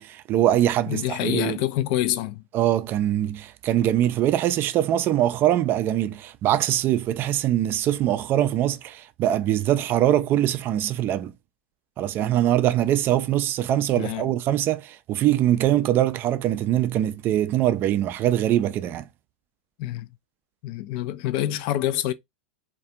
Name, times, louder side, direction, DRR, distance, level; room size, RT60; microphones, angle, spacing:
voice 1, 0.0-1.6 2.5-11.3 12.0-19.1, right 12 dB, 35° right, 0.3 m, -23 dB
voice 2, 0.9-2.4 14.0-14.4 19.8-20.1 20.6-22.1, left 13 dB, 50° left, 0.3 m, -26 dB
2.3 x 2.2 x 2.7 m
hypercardioid pair, 100°, 6 cm